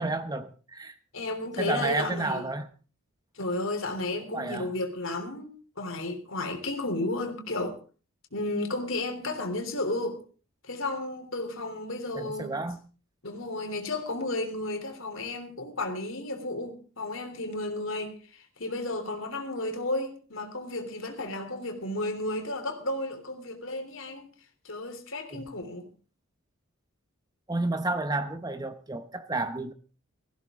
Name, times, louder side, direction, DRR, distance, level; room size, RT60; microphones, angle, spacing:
voice 1, 0.0-0.9 1.6-2.7 4.3-4.7 12.2-12.8 25.3-25.5 27.5-29.7, right 2 dB, 20° right, 0.9 m, -31 dB
voice 2, 1.1-2.4 3.3-5.5 5.8-7.8 8.3-10.2 10.6-12.5 13.2-24.3 24.6-25.9, left 2 dB, 65° left, 3.3 m, -33 dB
18.5 x 15.0 x 3.7 m
head